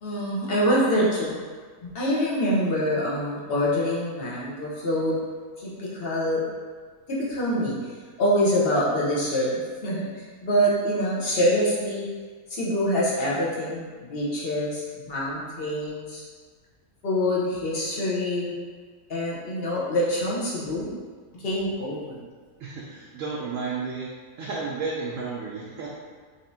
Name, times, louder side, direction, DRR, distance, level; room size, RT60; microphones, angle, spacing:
voice 1, 0.0-1.4 1.8-5.2 5.6-6.4 7.1-7.8 8.2-9.5 9.8-12.1 12.5-16.2 17.0-18.5 19.1-20.9 21.3-22.2, equal, 45° left, -6 dB, 0.9 m, -25 dB
voice 2, 22.6-24.1 24.4-25.9, right 4 dB, 70° right, -4 dB, 0.8 m, -32 dB
4.1 x 3.3 x 2.7 m, 1.5 s
omnidirectional pair, 1.6 m